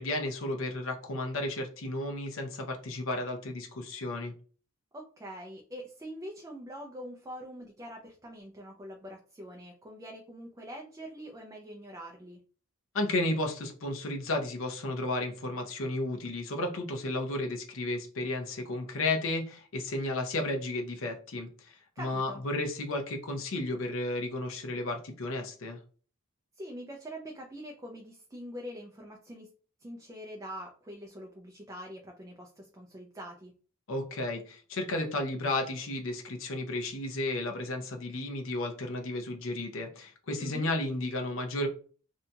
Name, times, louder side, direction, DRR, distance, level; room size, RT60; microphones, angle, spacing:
voice 1, 0.0-4.3 12.9-25.8 33.9-41.7, left 2 dB, 65° left, 3 dB, 0.6 m, -33 dB
voice 2, 4.9-12.4 22.0-22.4 26.6-29.5 29.8-33.5 40.4-40.7, equal, 15° right, 0 dB, 0.3 m, -44 dB
2.7 x 2.2 x 2.7 m, 0.40 s
head